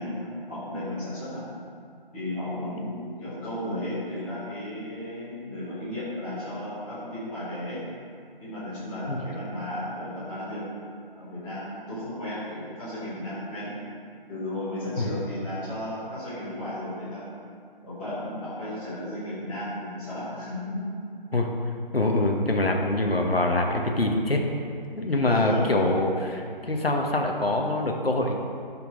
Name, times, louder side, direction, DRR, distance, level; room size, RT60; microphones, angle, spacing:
voice 1, 0.0-1.5 2.1-7.8 8.4-10.6 11.2-13.9 14.3-17.2 17.8-20.9 22.2-22.3 25.2-25.7, left 1 dB, 5° left, -16 dB, 1.5 m, -34 dB
voice 2, 21.9-24.4 25.0-28.4, left 2 dB, 85° left, 1 dB, 1.2 m, -24 dB
13.0 x 4.5 x 3.8 m, 2.3 s
figure-of-eight pair, 160°, 29 cm